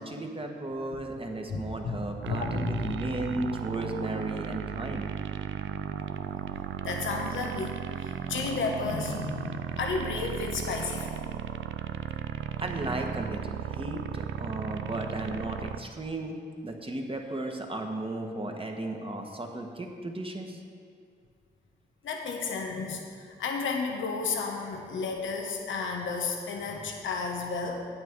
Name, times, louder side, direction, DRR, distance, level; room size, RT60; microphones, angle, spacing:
voice 1, 0.0-5.1 12.6-16.4 16.6-20.6, right 1 dB, 30° right, 2 dB, 1.6 m, -35 dB
voice 2, 1.5-2.0 2.3-3.0 6.8-11.2 14.7-14.8 22.0-27.9, left 4 dB, 85° left, 2 dB, 1.1 m, -32 dB
sound 1, 2.2-15.8, right 9 dB, 85° right, 0.4 m, -35 dB
9.1 x 8.3 x 4.7 m, 2.3 s
supercardioid pair, 45°, 20 cm